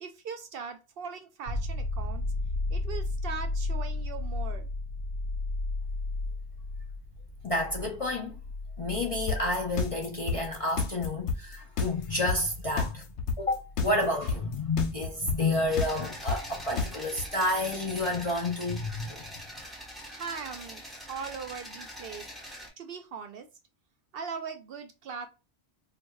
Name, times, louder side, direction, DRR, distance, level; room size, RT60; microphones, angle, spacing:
voice 1, 0.0-2.2 2.7-4.7 20.1-22.2 22.8-23.5 24.1-25.3, right 6 dB, 65° right, 0.7 m, -40 dB
sound 1, 1.5-15.0 17.7-17.8, left 2 dB, 60° left, 2.0 m, -35 dB
voice 2, 7.4-8.3 8.8-13.0 13.3-19.2, left 2 dB, 40° left, 0.5 m, -30 dB
sound 2, 9.3-17.2, left 5 dB, 75° left, 0.9 m, -29 dB
sound 3, 15.7-22.7, equal, ahead, 1.0 m, -44 dB
4.7 x 2.3 x 2.3 m
omnidirectional pair, 1.2 m